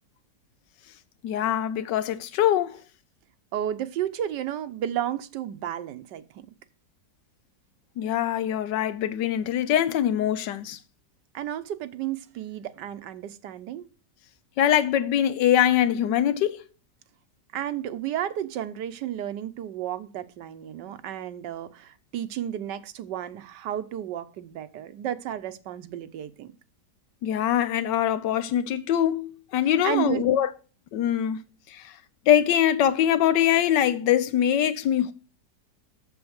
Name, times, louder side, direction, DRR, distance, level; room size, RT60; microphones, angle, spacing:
voice 1, 1.2-2.8 8.0-10.8 14.6-16.6 27.2-30.5 30.9-31.4 31.7-31.9 32.3-35.1, left 10 dB, 85° left, 1.4 m, -23 dB
voice 2, 3.5-6.5 11.3-13.9 17.5-26.5 29.8-30.3, right 11 dB, 85° right, 1.4 m, -32 dB
7.1 x 7.0 x 6.3 m
omnidirectional pair, 1.8 m